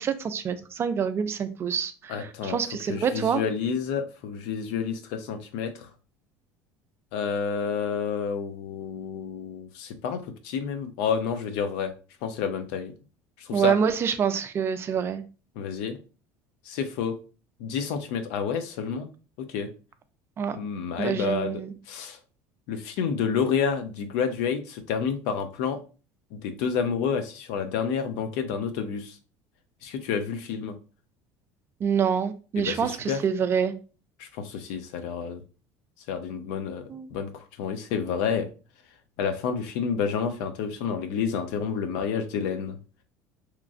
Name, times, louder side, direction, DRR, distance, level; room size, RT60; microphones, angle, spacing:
voice 1, 0.0-3.4 13.5-15.2 20.4-20.6 21.0-21.7 31.8-33.7 36.9-37.1, right 7 dB, 35° right, 0.4 m, -26 dB
voice 2, 2.1-2.6 2.9-5.9 7.1-11.9 12.2-12.9 13.4-13.7 15.6-16.0 16.7-17.2 17.6-19.1 19.4-19.7 20.5-21.6 21.9-22.2 22.7-25.8 26.3-29.2 29.8-30.8 32.6-33.2 34.2-35.4 36.1-36.8 37.1-38.5 39.2-42.8, left 6 dB, 75° left, 0.5 m, -29 dB
2.9 x 2.3 x 2.4 m
supercardioid pair, 100°, 7 cm